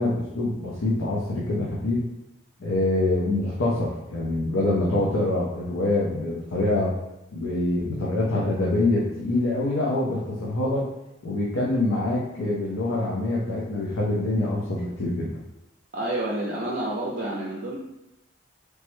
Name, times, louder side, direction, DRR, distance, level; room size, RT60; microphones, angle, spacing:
voice 1, 0.0-2.0 2.6-6.9 7.3-10.9 11.2-15.3, left 2 dB, 90° left, -5 dB, 0.6 m, -25 dB
voice 2, 15.9-17.8, right 1 dB, 45° right, -4 dB, 0.4 m, -29 dB
3.3 x 2.1 x 3.1 m, 0.88 s
head